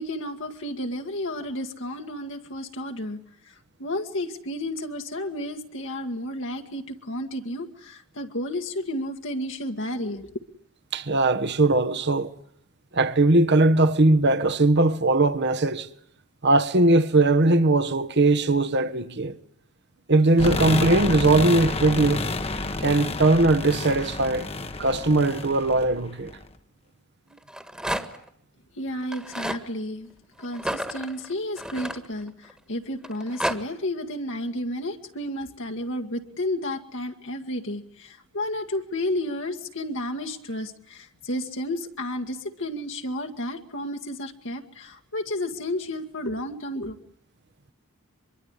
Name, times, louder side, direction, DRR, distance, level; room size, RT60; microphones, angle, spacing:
voice 1, 0.0-3.2 3.5-3.6 3.8-10.4 28.8-30.1 30.4-47.0, left 1 dB, 65° left, 1.9 m, -32 dB
voice 2, 10.9-12.3 12.9-15.9 16.4-19.3 20.1-22.3 22.8-24.5 24.8-26.3, right 2 dB, 55° right, 1.3 m, -20 dB
sound 1, 20.4-26.5, left 2 dB, 30° left, 1.1 m, -30 dB
Rattle, 27.4-28.3 29.0-29.6 30.5-32.5 33.0-33.6, right 1 dB, 5° right, 1.6 m, -31 dB
24.5 x 23.0 x 9.8 m
head